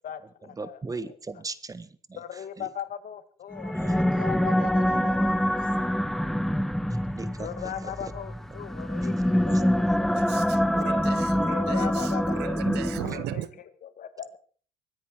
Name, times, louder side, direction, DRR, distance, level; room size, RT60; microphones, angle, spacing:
voice 1, 0.0-0.8 1.0-1.4 2.1-5.9 6.2-6.4 7.4-10.4 11.5-12.6 13.0-13.5 13.8-14.3, left 10 dB, 55° left, 12 dB, 1.8 m, -39 dB
voice 2, 0.6-2.2 2.6-2.7 3.9-4.1 6.9-8.1 9.0-9.3 9.5-9.9, right 3 dB, 20° right, 15 dB, 1.3 m, -39 dB
sound 1, 3.5-13.4, equal, ahead, 0.9 m, -25 dB
voice 3, 10.1-13.5, right 14 dB, 80° right, 17 dB, 1.1 m, -37 dB
24.0 x 10.0 x 4.7 m, 0.43 s
cardioid pair, 110°, 17 cm